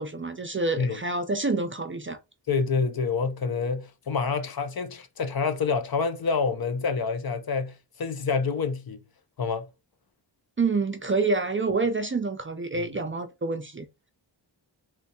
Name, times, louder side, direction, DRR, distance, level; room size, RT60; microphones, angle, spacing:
voice 1, 0.0-2.2 10.6-13.9, right 3 dB, 30° right, 0.4 m, -27 dB
voice 2, 2.5-9.0 9.4-9.7, left 5 dB, 50° left, 0.6 m, -27 dB
3.2 x 3.1 x 2.8 m
wide cardioid pair, 75°, 46 cm